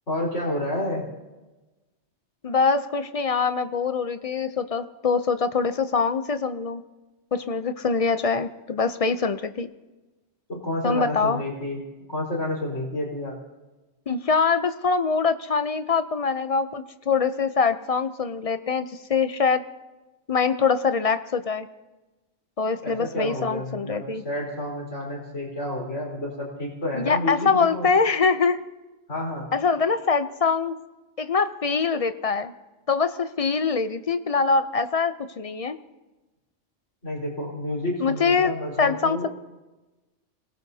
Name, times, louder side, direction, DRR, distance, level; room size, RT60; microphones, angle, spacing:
voice 1, 0.1-1.1 10.5-11.8 12.1-13.4 22.8-27.9 29.1-29.5 37.0-39.3, left 1 dB, 85° left, -4 dB, 4.6 m, -30 dB
voice 2, 2.4-6.8 7.3-9.7 10.8-11.4 14.1-19.6 20.3-21.7 22.6-24.2 26.9-28.6 29.5-30.7 31.2-32.5 32.9-35.8 38.0-38.5 38.8-39.3, left 5 dB, 45° left, 11 dB, 0.5 m, -24 dB
26.0 x 18.0 x 2.8 m, 1.1 s
omnidirectional pair, 1.2 m